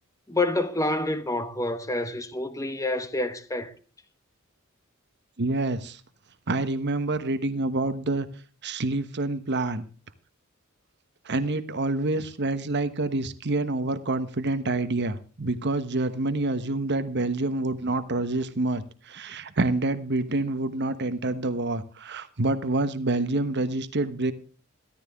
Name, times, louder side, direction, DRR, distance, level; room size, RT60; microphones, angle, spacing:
voice 1, 0.3-3.7, left 2 dB, 15° left, 1.2 m, -28 dB
voice 2, 5.4-6.0 6.5-8.3 8.6-9.9 11.2-24.3, right 2 dB, 55° right, 1.1 m, -27 dB
14.5 x 14.0 x 3.6 m
head